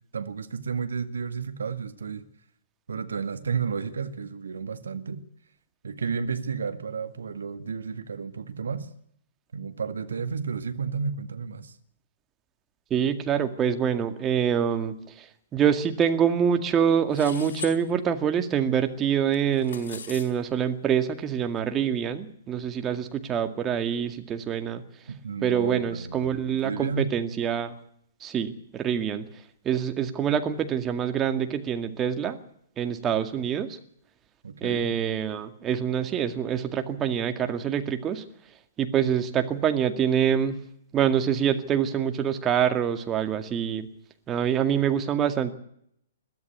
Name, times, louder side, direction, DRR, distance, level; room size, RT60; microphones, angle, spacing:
voice 1, 0.1-2.2 2.9-5.2 5.8-8.9 9.5-11.7 25.1-26.3 26.6-27.1 34.4-34.9, right 5 dB, 70° right, 1.9 m, -32 dB
voice 2, 12.9-15.3 15.5-24.8 25.4-27.7 28.2-29.3 29.7-32.4 32.8-33.8 34.6-38.2 38.8-40.6 40.9-43.9 44.3-45.5, right 8 dB, 20° right, 2.1 m, -25 dB
sound 1, 17.1-17.8 19.3-20.3, left 7 dB, 60° left, 4.8 m, -39 dB
22.0 x 13.5 x 9.5 m
figure-of-eight pair, 120°, 0 cm